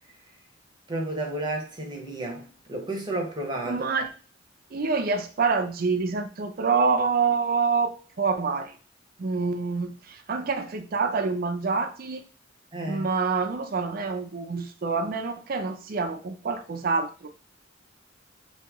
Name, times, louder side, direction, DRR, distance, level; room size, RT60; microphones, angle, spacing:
voice 1, 0.9-3.8 12.7-13.1, right 2 dB, 25° right, 0.8 m, -32 dB
voice 2, 3.7-4.1 4.7-8.8 9.2-12.2 12.9-17.3, right 4 dB, 50° right, 0.4 m, -26 dB
3.0 x 2.8 x 3.5 m
head